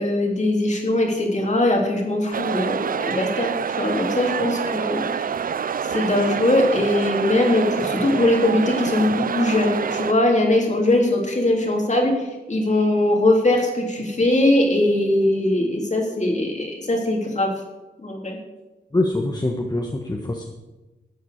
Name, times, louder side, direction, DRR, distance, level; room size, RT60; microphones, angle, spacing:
voice 1, 0.0-3.5 3.8-5.3 5.8-17.5 18.0-18.4, left 1 dB, 45° left, 0 dB, 3.2 m, -21 dB
sound 1, 2.3-10.1, right 7 dB, 55° right, 0.4 m, -26 dB
voice 2, 18.9-20.4, left 2 dB, 25° left, 1 dB, 1.5 m, -24 dB
13.5 x 8.2 x 6.7 m, 1.1 s
wide cardioid pair, 80°, 17 cm